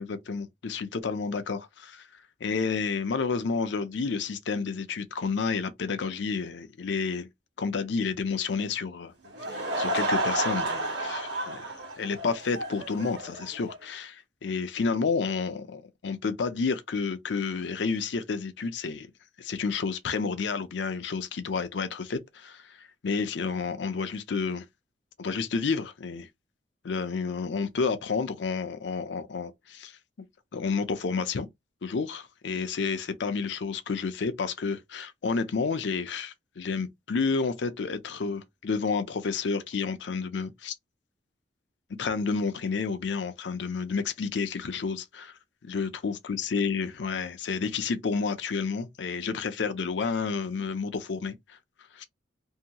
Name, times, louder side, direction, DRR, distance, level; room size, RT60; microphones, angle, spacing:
voice 1, 0.0-2.1 2.4-7.3 7.6-9.1 9.5-11.7 12.0-19.1 19.4-24.6 25.2-26.3 26.8-30.0 30.5-31.5 31.8-40.7 42.0-45.3 45.6-51.6 51.9-52.0, left 5 dB, 70° left, 0.5 m, -30 dB
Laughter / Crowd, 9.2-13.8, right 1 dB, 60° right, 1.1 m, -31 dB
2.7 x 2.2 x 2.8 m
head